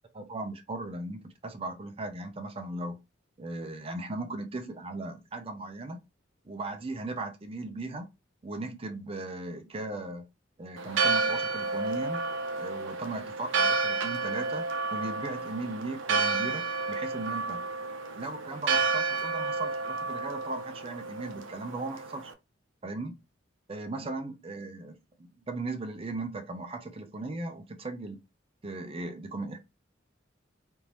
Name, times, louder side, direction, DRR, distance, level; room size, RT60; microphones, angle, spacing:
voice 1, 0.1-3.0 3.4-6.0 6.4-8.1 8.4-10.3 10.6-12.2 12.6-14.7 14.9-17.6 18.1-22.3 22.8-23.1 23.7-28.2 28.6-29.6, right 2 dB, 30° right, 0.5 m, -37 dB
Church bell, 10.8-22.3, right 4 dB, 75° right, 0.6 m, -31 dB
3.6 x 2.5 x 2.9 m
head